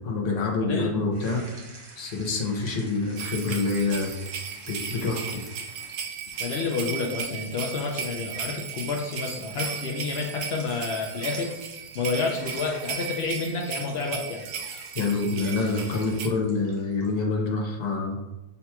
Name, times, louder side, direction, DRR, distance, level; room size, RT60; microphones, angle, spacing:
voice 1, 0.0-1.6 2.0-4.1 4.7-5.4 14.9-18.2, left 3 dB, 45° left, -1 dB, 0.5 m, -27 dB
voice 2, 0.6-0.9 6.4-11.5 11.9-14.4 15.4-15.5, left 4 dB, 90° left, 0 dB, 0.5 m, -29 dB
sound 1, 1.1-17.2, right 3 dB, 85° right, 1.5 m, -51 dB
sound 2, 2.6-6.0 6.3-7.4 8.2-8.5 9.6-10.1 11.0-11.6 12.4-13.3 14.4-15.0 15.6-16.3, left 1 dB, 65° left, 1.5 m, -50 dB
sound 3, 3.2-16.3, right 7 dB, 65° right, 0.8 m, -36 dB
6.8 x 2.9 x 2.2 m, 1.0 s
omnidirectional pair, 1.7 m